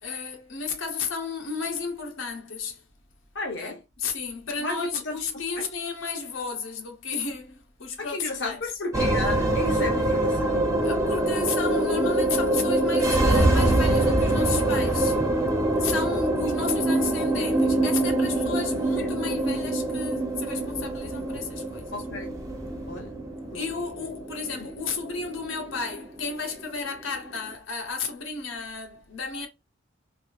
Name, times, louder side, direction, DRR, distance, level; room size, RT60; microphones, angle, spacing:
voice 1, 0.0-2.8 3.6-8.6 10.8-15.2 15.8-21.9 23.5-29.5, left 5 dB, 85° left, 1.0 m, -33 dB
voice 2, 3.3-3.8 4.6-5.2 5.6-5.7 8.0-10.6 19.0-19.1 21.9-22.3 22.9-23.1 23.5-23.6 24.5-24.7, left 3 dB, 60° left, 0.8 m, -33 dB
sound 1, 8.9-27.4, right 1 dB, 15° right, 0.7 m, -25 dB
3.5 x 2.6 x 2.6 m
head